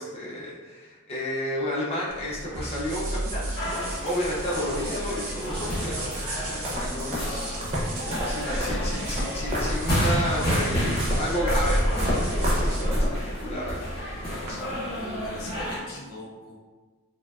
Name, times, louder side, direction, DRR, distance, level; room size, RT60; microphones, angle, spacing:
voice 1, 0.0-7.6 7.9-13.1 13.4-14.8, equal, 30° left, -6 dB, 0.4 m, -32 dB
sound 1, 2.1-14.5, right 1 dB, 80° right, 0.5 m, -35 dB
sound 2, 3.5-15.8, equal, 45° left, 0.9 m, -31 dB
sound 3, 6.1-13.4, equal, 30° right, 0.4 m, -29 dB
voice 2, 15.1-16.5, left 1 dB, 85° left, -5 dB, 0.7 m, -41 dB
2.6 x 2.1 x 2.3 m, 1.4 s
head